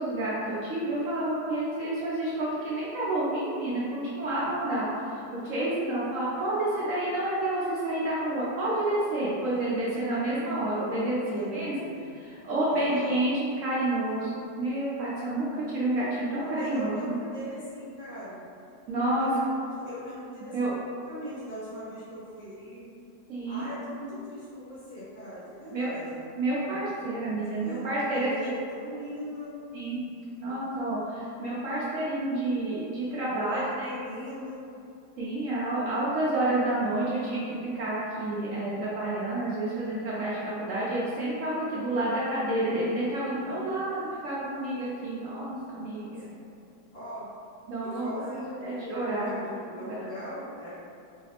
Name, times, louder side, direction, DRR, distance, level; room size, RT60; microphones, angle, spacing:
voice 1, 0.0-11.7 12.2-17.1 18.9-19.3 20.5-20.7 23.3-23.6 25.7-25.9 26.3-28.5 29.7-30.1 30.4-33.9 35.2-46.3 47.7-48.3 48.6-50.1, right 1 dB, 70° right, -8 dB, 0.8 m, -29 dB
voice 2, 11.3-12.0 12.7-13.2 16.3-18.4 19.2-20.7 21.1-22.9 23.5-26.2 27.4-29.6 33.3-34.7 46.9-47.3 47.8-50.8, equal, 85° left, -12 dB, 2.3 m, -40 dB
4.6 x 2.0 x 2.8 m, 2.6 s
omnidirectional pair, 1.8 m